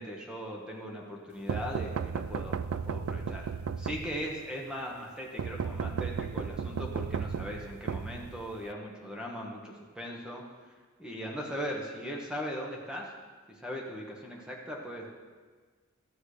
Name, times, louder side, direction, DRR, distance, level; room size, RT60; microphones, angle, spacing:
voice 1, 0.0-2.6 2.9-3.4 3.8-10.4 11.0-13.1 13.6-15.1, equal, 5° right, -1 dB, 1.2 m, -39 dB
sound 1, 1.5-4.4 5.4-8.7, right 6 dB, 85° right, 0.4 m, -35 dB
12.5 x 8.1 x 5.0 m, 1.5 s
head